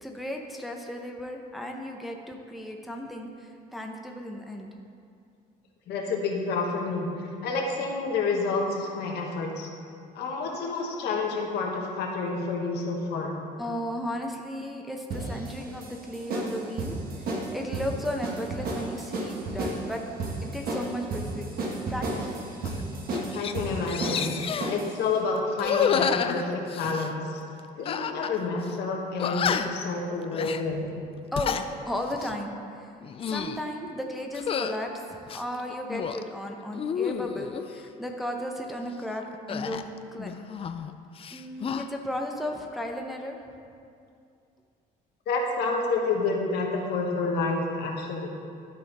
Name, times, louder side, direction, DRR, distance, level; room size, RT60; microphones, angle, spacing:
voice 1, 0.0-4.7 13.6-17.0 17.2-20.0 20.4-21.5 21.9-22.3 31.3-32.9 33.3-40.4 41.3-43.4, left 1 dB, ahead, 1 dB, 0.6 m, -35 dB
voice 2, 5.9-7.1 7.4-9.7 10.1-13.4 23.3-27.4 27.8-30.9 45.3-48.3, left 3 dB, 75° left, 0 dB, 1.3 m, -29 dB
sound 1, 15.1-25.0, right 2 dB, 60° right, 1.4 m, -33 dB
sound 2, 22.6-22.8 23.1-23.5 23.9-24.8 25.6-27.1 27.9-28.4 28.6-28.7 29.2-29.9 30.3-30.6 31.2-31.7 32.1-32.4 33.0-33.6 34.3-34.8 35.3-36.2 36.7-37.7 39.5-40.9 41.2-41.9, left 7 dB, 35° left, 0.3 m, -30 dB
12.0 x 4.2 x 4.1 m, 2.4 s
cardioid pair, 110°, 17 cm